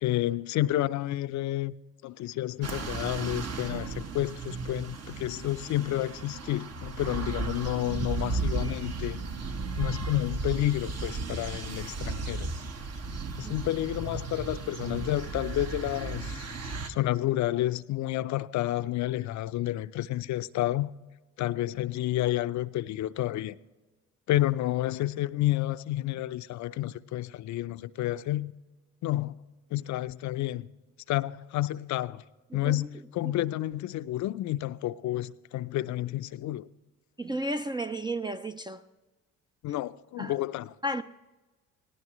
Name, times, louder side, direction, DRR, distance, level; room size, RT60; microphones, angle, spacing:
voice 1, 0.0-1.7 2.0-9.2 9.8-12.5 13.4-16.4 16.9-20.9 21.4-23.5 24.3-28.5 29.0-29.4 29.7-30.7 31.1-32.2 32.5-36.7 39.6-40.7, left 15 dB, 65° left, 0.5 m, -30 dB
sound 1, 2.6-16.9, right 4 dB, 55° right, 1.2 m, -35 dB
voice 2, 37.2-38.8 40.2-40.3 40.8-41.0, right 1 dB, 15° right, 0.3 m, -32 dB
18.5 x 17.5 x 3.1 m
supercardioid pair, 80°, 31 cm